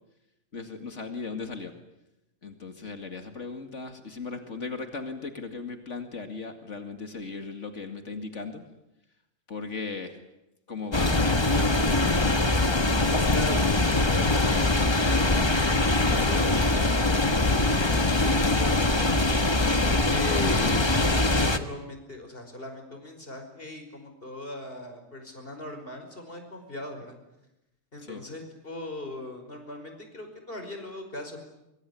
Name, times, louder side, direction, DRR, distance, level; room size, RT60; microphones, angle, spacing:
voice 1, 0.5-1.7 2.4-8.6 9.5-10.2 10.7-11.9 16.0-16.3 28.0-28.2, left 4 dB, 65° left, 6 dB, 2.6 m, -37 dB
sound 1, 10.9-21.6, left 2 dB, 20° left, 1.4 m, -23 dB
voice 2, 13.3-15.4 16.2-19.0 19.8-20.9 21.1-27.2 27.9-31.4, left 2 dB, 45° left, 5 dB, 5.6 m, -39 dB
24.0 x 24.0 x 9.9 m, 0.91 s
omnidirectional pair, 1.4 m